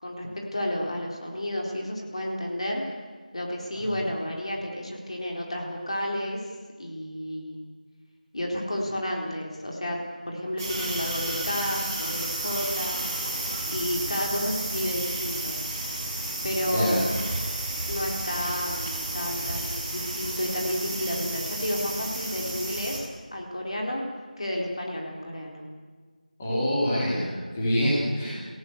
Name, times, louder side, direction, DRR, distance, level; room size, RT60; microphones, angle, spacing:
voice 1, 0.0-2.8 3.3-6.4 6.8-7.6 8.3-13.0 13.7-15.6 16.4-17.2 17.9-23.0 23.3-24.0 24.4-25.6, left 1 dB, 45° left, -1 dB, 4.0 m, -31 dB
sound 1, 10.6-23.0, right 2 dB, 15° right, 3.4 m, -32 dB
voice 2, 16.7-17.2 26.4-28.4, equal, 10° left, -8 dB, 3.6 m, -26 dB
27.5 x 17.5 x 8.1 m, 1.5 s
figure-of-eight pair, 175°, 5 cm